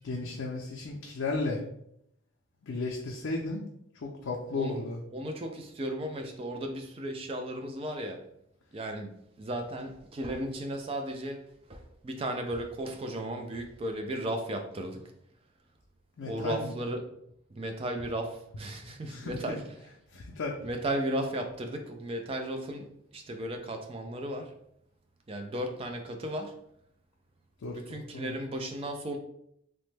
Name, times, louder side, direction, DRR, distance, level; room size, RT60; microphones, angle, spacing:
voice 1, 0.0-1.6 2.6-3.6 3.9-5.0 16.2-16.8 19.1-20.6 27.6-28.4, left 3 dB, 75° left, -1 dB, 0.4 m, -35 dB
voice 2, 5.1-8.2 8.7-11.4 11.7-15.0 16.2-17.0 17.6-19.6 20.6-24.5 25.3-26.5 27.7-29.2, right 1 dB, 25° right, 4 dB, 0.3 m, -35 dB
3.0 x 2.1 x 3.2 m, 0.73 s
head